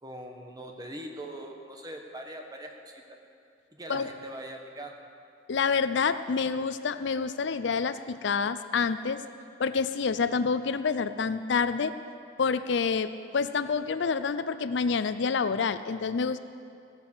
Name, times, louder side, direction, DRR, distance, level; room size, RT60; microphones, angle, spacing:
voice 1, 0.0-3.0 3.7-4.9, right 1 dB, 20° right, 2 dB, 1.3 m, -41 dB
voice 2, 5.5-9.2 9.6-11.9 12.4-16.4, left 5 dB, 65° left, 12 dB, 0.5 m, -28 dB
15.5 x 9.7 x 7.2 m, 2.5 s
head